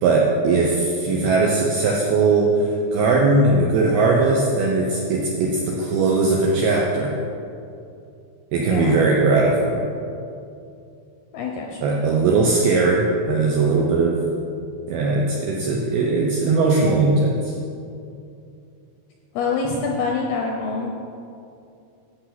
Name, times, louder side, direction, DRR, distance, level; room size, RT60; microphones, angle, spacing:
voice 1, 0.0-7.1 8.5-9.9 11.8-14.2 14.9-17.5, right 3 dB, 80° right, -2 dB, 2.2 m, -19 dB
voice 2, 8.6-9.0 11.3-12.0 19.3-20.9, left 4 dB, 80° left, 0 dB, 2.3 m, -26 dB
11.0 x 7.9 x 5.9 m, 2.6 s
omnidirectional pair, 5.5 m